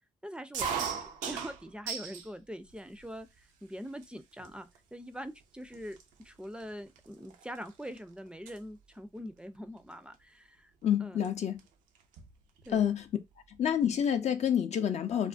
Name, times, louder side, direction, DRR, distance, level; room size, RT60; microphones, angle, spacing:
voice 1, 0.2-1.0 1.3-6.0 6.2-10.7 11.0-11.2 12.6-12.9, equal, 5° right, 0.4 m, -43 dB
sound 1, 0.5-2.3 2.7-3.4 4.0-4.1 4.4-4.8 5.4-5.5 5.7-8.0 8.3-8.6 9.9-10.1 11.2-11.3 11.6-11.7 12.0-12.8, right 6 dB, 80° right, 0.4 m, -38 dB
voice 2, 10.8-11.6 12.7-13.1 13.6-15.3, left 9 dB, 60° left, 0.4 m, -28 dB
2.3 x 2.1 x 2.4 m
supercardioid pair, 45°, 13 cm